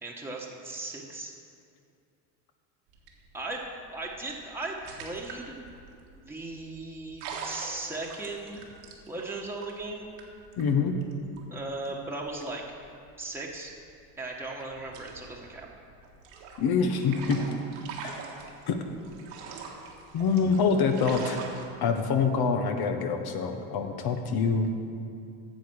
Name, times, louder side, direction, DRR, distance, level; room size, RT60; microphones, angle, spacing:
voice 1, 0.0-1.3 3.3-3.6 3.9-5.6 6.3-8.6 9.1-10.1 11.5-12.6 13.2-13.7 14.2-15.7, right 2 dB, 5° right, -2 dB, 1.4 m, -37 dB
sound 1, 2.9-14.1 14.4-21.7, right 5 dB, 80° right, 1.8 m, -44 dB
voice 2, 10.6-10.9 16.6-17.4 18.0-18.1 18.7-18.8 20.1-21.4 21.8-24.7, left 5 dB, 50° left, 5 dB, 1.1 m, -25 dB
9.3 x 7.0 x 6.4 m, 2.4 s
supercardioid pair, 85°, 47 cm